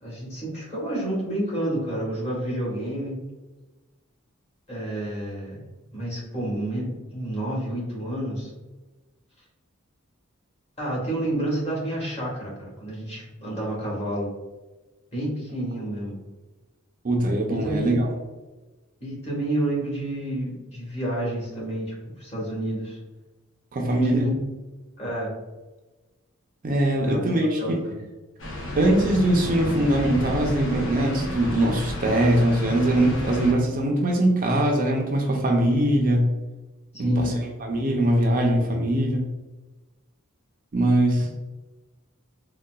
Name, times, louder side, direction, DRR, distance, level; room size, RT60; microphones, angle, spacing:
voice 1, 0.0-3.2 4.7-5.6 5.9-8.5 10.8-14.3 15.1-16.2 17.5-17.9 19.0-23.0 23.9-24.3 25.0-25.3 27.0-27.2 27.6-27.9 36.9-37.4 41.2-41.3, right 1 dB, 30° left, -5 dB, 1.3 m, -29 dB
voice 2, 17.0-18.1 23.7-24.2 26.6-27.8 28.8-36.3 37.0-37.3 37.6-39.3 40.7-41.3, right 1 dB, 40° right, 0 dB, 0.4 m, -22 dB
sound 1, 28.4-33.5, left 1 dB, 60° left, 0.8 m, -31 dB
3.8 x 2.2 x 2.2 m, 1.2 s
head